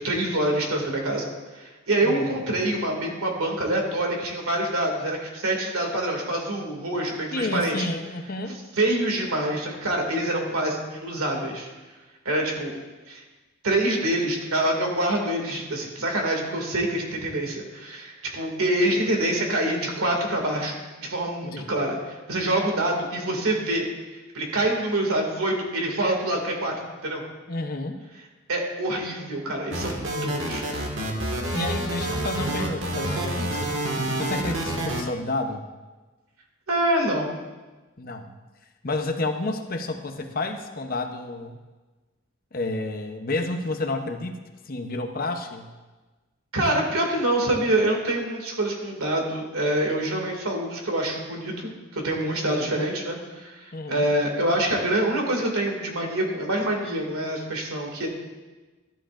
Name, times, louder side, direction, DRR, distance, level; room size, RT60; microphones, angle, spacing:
voice 1, 0.0-7.9 8.8-11.7 12.2-12.7 13.1-13.2 13.6-23.8 24.3-26.7 27.0-27.2 28.5-30.6 36.7-37.3 46.5-58.1, right 1 dB, 80° right, 0 dB, 2.3 m, -26 dB
voice 2, 2.0-2.4 7.3-8.6 21.4-21.7 27.5-28.0 31.5-33.7 34.2-35.6 38.0-38.3 38.8-41.6 42.5-44.4 44.7-45.7 52.4-52.8 53.7-54.1, left 2 dB, 40° left, 5 dB, 0.8 m, -30 dB
sound 1, 29.7-35.0, right 1 dB, 60° right, 1.7 m, -28 dB
13.5 x 11.5 x 2.5 m, 1.2 s
head